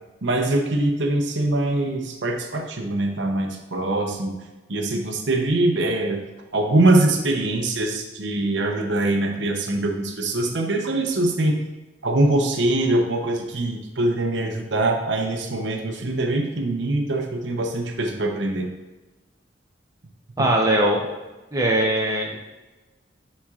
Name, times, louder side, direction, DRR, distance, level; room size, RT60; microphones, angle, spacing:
voice 1, 0.2-4.3 4.7-6.2 6.5-11.6 12.0-18.7, right 2 dB, 70° right, 3 dB, 0.8 m, -23 dB
voice 2, 20.4-21.0 21.5-22.4, right 1 dB, 20° right, -1 dB, 0.7 m, -20 dB
10.5 x 4.3 x 2.4 m, 1.1 s
head